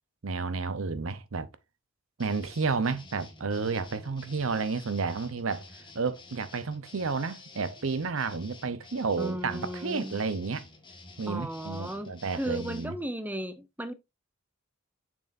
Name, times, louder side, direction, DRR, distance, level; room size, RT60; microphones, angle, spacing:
voice 1, 0.2-1.5 2.2-10.7 11.2-12.9, right 4 dB, 70° right, 0.7 m, -31 dB
sound 1, 2.2-12.9, left 3 dB, 25° left, 1.5 m, -51 dB
voice 2, 9.2-10.2 11.3-13.9, right 1 dB, 10° right, 0.6 m, -35 dB
7.0 x 6.2 x 2.6 m
head